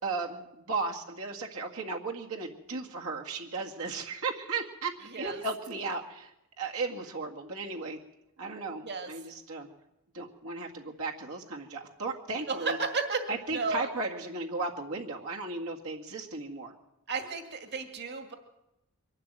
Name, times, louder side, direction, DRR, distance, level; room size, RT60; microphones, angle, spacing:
voice 1, 0.0-6.3 6.6-8.0 8.4-9.7 10.1-12.8 13.3-16.7, right 3 dB, 75° right, 0 dB, 2.0 m, -35 dB
voice 2, 5.1-5.4 8.8-9.1 12.5-13.2 13.5-13.9 17.1-18.3, right 4 dB, 50° right, 6 dB, 2.1 m, -33 dB
23.5 x 12.0 x 9.2 m, 0.88 s
head